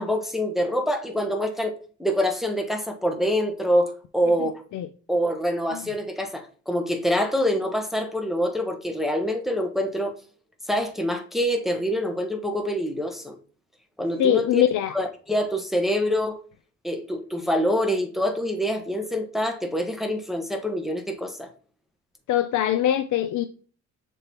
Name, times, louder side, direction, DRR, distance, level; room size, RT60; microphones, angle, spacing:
voice 1, 0.0-1.7 2.0-4.6 5.1-10.1 10.7-13.4 14.0-14.6 14.9-16.4 16.8-21.5, equal, ahead, 1.2 m, -25 dB
voice 2, 14.2-14.9 22.3-23.4, left 11 dB, 75° left, 0.6 m, -22 dB
6.8 x 3.7 x 4.3 m
cardioid pair, 90°, 30 cm